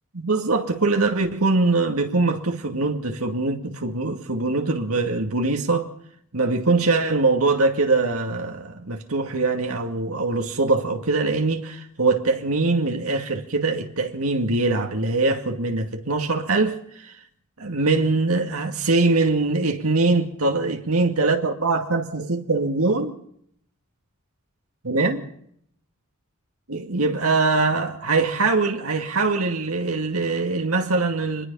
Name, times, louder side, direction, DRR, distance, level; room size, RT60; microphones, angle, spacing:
voice 1, 0.1-5.9 6.3-17.1 17.6-23.1 24.8-25.2 26.7-31.5, right 3 dB, 80° right, 2.3 m, -22 dB
25.5 x 21.5 x 5.6 m
head